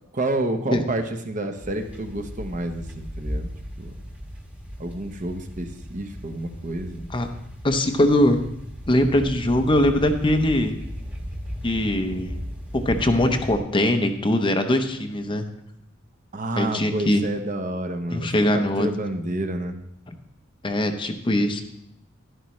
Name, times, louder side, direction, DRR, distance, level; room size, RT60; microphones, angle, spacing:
voice 1, 0.1-3.5 3.8-3.9 4.8-7.1 16.3-19.7, right 1 dB, 40° right, 6 dB, 0.9 m, -29 dB
sound 1, 1.6-13.6, equal, 5° right, 1.2 m, -36 dB
voice 2, 7.6-8.4 8.9-10.7 11.6-12.3 12.7-15.4 16.6-17.2 18.1-18.9 20.6-21.6, left 1 dB, 25° left, 6 dB, 0.7 m, -21 dB
11.5 x 11.0 x 3.1 m, 0.79 s
head